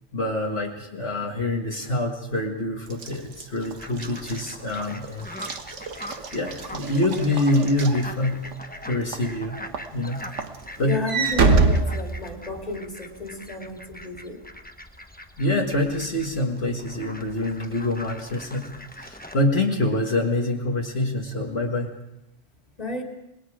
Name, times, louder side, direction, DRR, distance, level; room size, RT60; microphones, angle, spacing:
voice 1, 0.1-5.3 6.3-8.4 8.8-9.6 9.9-10.2 10.8-11.0 15.4-21.9, left 1 dB, 50° left, -1 dB, 2.0 m, -25 dB
Walk footsteps / Slam, 2.9-8.6 9.1-9.4 9.7-12.7, right 3 dB, 65° right, 1.6 m, -26 dB
Fowl, 3.6-19.3, left 1 dB, 10° left, 0.9 m, -42 dB
voice 2, 10.8-14.4 22.8-23.0, left 2 dB, 30° left, 2 dB, 2.8 m, -32 dB
27.0 x 20.5 x 4.9 m, 0.88 s
omnidirectional pair, 1.3 m